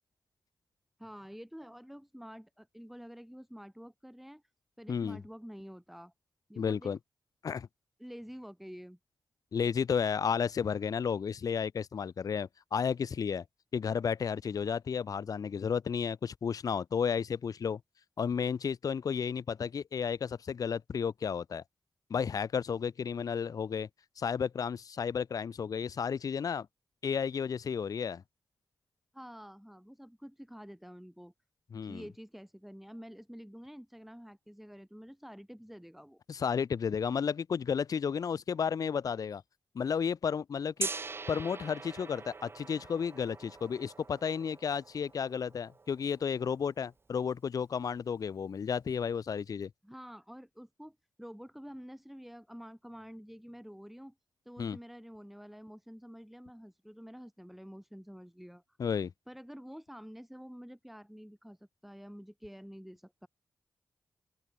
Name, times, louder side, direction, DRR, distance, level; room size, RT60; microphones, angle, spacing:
voice 1, 1.0-4.4 4.8-6.1 6.5-6.9 8.0-9.0 29.1-31.3 31.8-36.2 49.8-54.1 54.4-58.8 59.3-63.3, equal, ahead, 2.8 m, -49 dB
voice 2, 4.9-5.2 6.6-7.0 7.4-7.7 9.5-13.4 13.7-17.8 18.2-21.6 22.1-23.9 24.2-26.7 27.0-28.2 31.7-32.0 36.3-39.4 39.8-40.9 41.3-49.7 54.6-54.8 58.8-59.1, left 6 dB, 55° left, 0.3 m, -32 dB
Gong, 40.8-46.7, right 4 dB, 30° right, 0.4 m, -43 dB
open air
cardioid pair, 45°, 8 cm